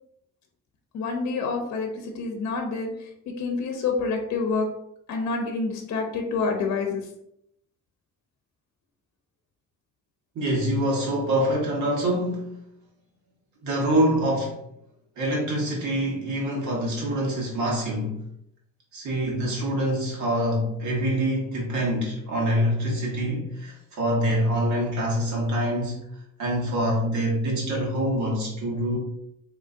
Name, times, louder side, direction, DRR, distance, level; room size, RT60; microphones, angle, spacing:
voice 1, 0.9-2.9 3.4-4.7 5.1-7.0, left 4 dB, 65° left, 3 dB, 0.7 m, -27 dB
voice 2, 10.3-12.6 13.6-14.6 15.2-18.2 18.9-26.0 26.4-29.0, right 1 dB, 70° right, -2 dB, 1.4 m, -25 dB
3.8 x 2.8 x 2.6 m, 0.75 s
cardioid pair, 90°, 30 cm